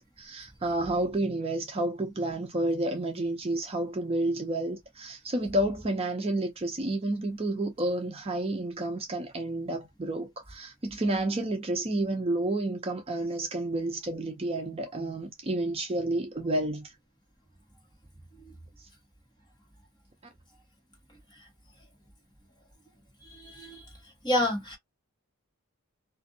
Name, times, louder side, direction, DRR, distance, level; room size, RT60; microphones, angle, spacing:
voice 1, 0.2-16.9, right 1 dB, 25° right, 0.5 m, -30 dB
voice 2, 23.2-23.8 24.2-24.8, left 1 dB, 20° left, 1.3 m, -29 dB
2.5 x 2.5 x 2.6 m
head